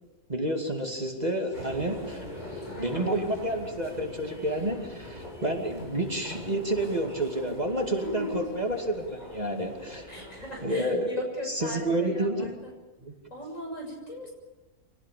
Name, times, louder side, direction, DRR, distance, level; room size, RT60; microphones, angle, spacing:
voice 1, 0.3-2.2 2.8-10.3 10.6-11.2 11.5-12.5 13.0-13.1, right 1 dB, 30° right, 3 dB, 2.6 m, -29 dB
sound 1, 1.5-10.7, left 1 dB, 35° left, 6.4 m, -42 dB
voice 2, 2.2-3.1 7.7-8.5 10.1-12.7 13.3-14.3, left 1 dB, 75° left, 1 dB, 7.1 m, -38 dB
26.0 x 18.5 x 8.6 m, 1.2 s
omnidirectional pair, 1.4 m